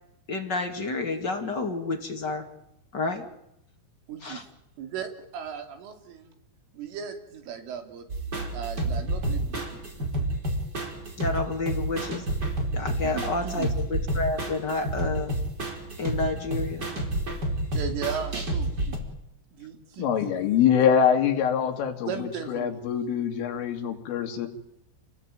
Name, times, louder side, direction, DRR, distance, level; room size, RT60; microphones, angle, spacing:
voice 1, 0.3-2.5 2.9-3.3 4.2-4.4 11.2-12.2 12.7-15.4 16.0-16.9, left 3 dB, 45° left, 4 dB, 1.5 m, -30 dB
voice 2, 4.1-4.4 4.8-6.3 6.7-9.8 13.0-13.7 17.7-19.0 19.6-20.3 22.1-22.8, right 7 dB, 75° right, 6 dB, 5.7 m, -37 dB
sound 1, 8.1-19.0, right 1 dB, 20° right, 4.5 m, -29 dB
voice 3, 20.0-24.5, left 8 dB, 75° left, 4 dB, 5.1 m, -24 dB
29.5 x 20.5 x 9.2 m, 0.84 s
omnidirectional pair, 5.8 m